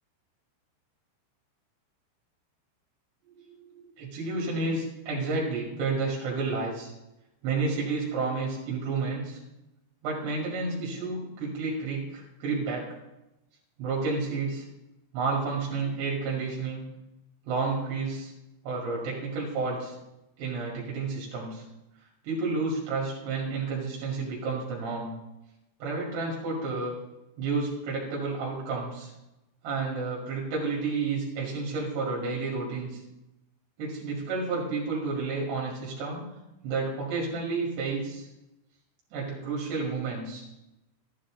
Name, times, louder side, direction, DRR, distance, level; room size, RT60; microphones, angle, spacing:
voice 1, 3.4-6.9 7.4-9.4 10.0-12.9 13.8-14.6 15.1-16.9 17.5-18.3 18.6-20.0 20.4-21.6 22.2-25.1 25.8-26.9 27.4-29.1 29.6-33.0 33.8-36.2 36.6-38.3 39.1-40.5, right 4 dB, 60° right, -3 dB, 4.0 m, -31 dB
13.5 x 11.5 x 3.8 m, 0.97 s
omnidirectional pair, 5.8 m